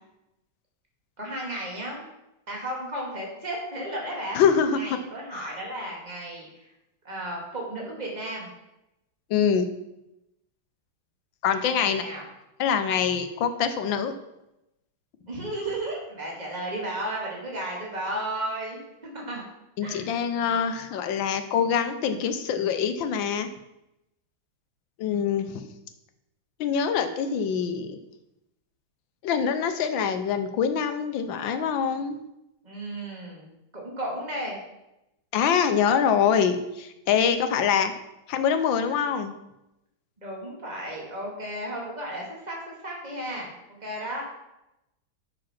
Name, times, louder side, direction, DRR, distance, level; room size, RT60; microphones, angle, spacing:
voice 1, 1.2-2.1 2.5-4.4 4.7-6.7 7.0-8.5 11.8-12.2 15.3-18.8 19.1-19.4 19.8-20.1 32.6-34.6 40.2-44.2, right 1 dB, 20° right, -2 dB, 2.2 m, -34 dB
voice 2, 4.3-5.0 5.3-5.5 9.3-9.7 11.4-12.0 12.6-14.1 19.8-23.5 25.0-25.7 26.6-28.0 29.2-32.2 35.3-37.9 38.3-39.3, left 7 dB, 70° left, 9 dB, 1.4 m, -24 dB
7.5 x 6.1 x 5.8 m, 0.90 s
omnidirectional pair, 2.3 m